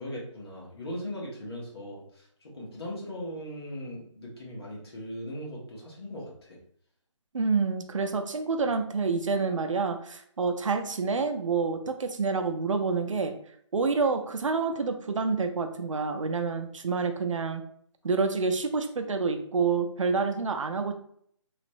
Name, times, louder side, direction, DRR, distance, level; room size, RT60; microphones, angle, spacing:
voice 1, 0.0-6.6, equal, 50° left, -4 dB, 1.4 m, -39 dB
voice 2, 7.3-13.3 13.7-17.6 18.0-20.9, right 4 dB, 75° right, 6 dB, 0.6 m, -28 dB
3.2 x 2.5 x 3.1 m, 0.65 s
hypercardioid pair, 170°, 17 cm